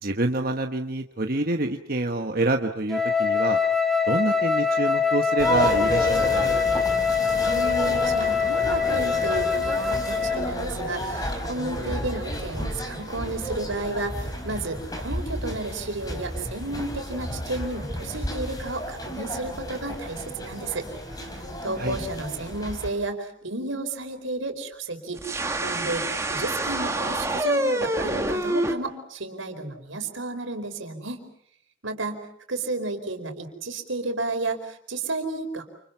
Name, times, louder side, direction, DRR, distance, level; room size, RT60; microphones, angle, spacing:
voice 1, 0.0-3.6 4.1-6.5 21.8-22.0, right 2 dB, 50° right, 4 dB, 1.3 m, -27 dB
Wind instrument woodwind instrument, 2.9-10.5, left 6 dB, ahead, 2.1 m, -23 dB
sound 1, 5.4-22.9, equal, 20° left, 4.4 m, -32 dB
voice 2, 7.4-20.9 21.6-25.2 25.6-31.2 31.8-32.2 32.5-35.7, right 2 dB, 85° right, 5 dB, 4.7 m, -32 dB
sound 2, 25.2-28.7, right 2 dB, 15° right, 2.1 m, -27 dB
29.0 x 28.5 x 5.8 m, 0.67 s
head